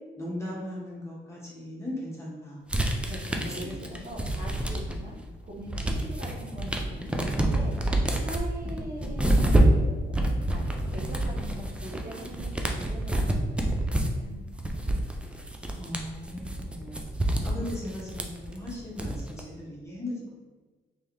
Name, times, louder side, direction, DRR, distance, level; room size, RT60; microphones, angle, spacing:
voice 1, 0.1-2.6 3.3-4.0 5.9-6.1 15.8-17.0 17.4-20.4, left 1 dB, 15° left, -6 dB, 1.5 m, -38 dB
sound 1, 2.7-5.1 5.5-19.4, right 1 dB, 5° right, 0.5 m, -27 dB
voice 2, 3.1-5.2 5.6-7.7 8.2-14.4, right 1 dB, 45° right, -4 dB, 1.1 m, -42 dB
3.3 x 3.1 x 3.4 m, 1.3 s
cardioid pair, 90°, 20 cm